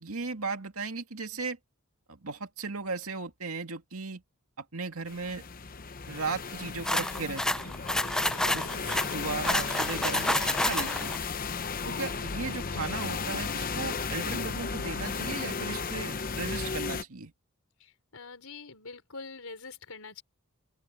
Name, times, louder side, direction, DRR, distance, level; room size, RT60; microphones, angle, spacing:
voice 1, 0.0-1.6 2.1-4.2 4.6-5.4 6.1-7.7 8.4-11.2 11.9-17.3, right 4 dB, 75° right, 2.2 m, -36 dB
sound 1, 5.1-17.0, left 5 dB, 40° left, 0.9 m, -34 dB
sound 2, 6.8-11.2, left 1 dB, 5° left, 0.4 m, -29 dB
voice 2, 17.8-20.2, left 4 dB, 70° left, 4.8 m, -46 dB
open air
head